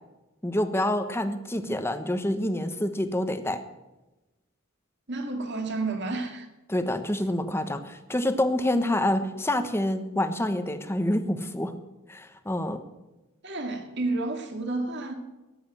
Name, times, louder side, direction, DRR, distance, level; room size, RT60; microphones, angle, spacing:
voice 1, 0.4-3.6 6.7-11.7 12.1-12.8, left 1 dB, 10° left, 1.1 m, -27 dB
voice 2, 5.1-6.5 13.4-15.1, right 3 dB, 55° right, 2.3 m, -31 dB
14.5 x 10.5 x 7.6 m
head